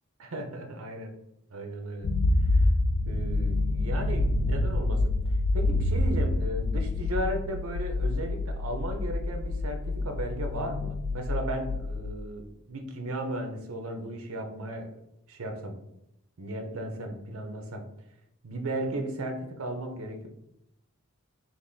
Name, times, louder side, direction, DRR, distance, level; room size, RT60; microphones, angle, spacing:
voice 1, 0.2-1.1 1.5-2.1 2.5-2.6 3.1-5.1 5.5-14.9 15.3-15.8 16.4-17.8 18.4-20.3, right 1 dB, 80° right, 4 dB, 0.7 m, -35 dB
sound 1, 2.0-12.1, left 2 dB, 60° left, 0.3 m, -27 dB
3.5 x 2.5 x 3.9 m, 0.80 s
head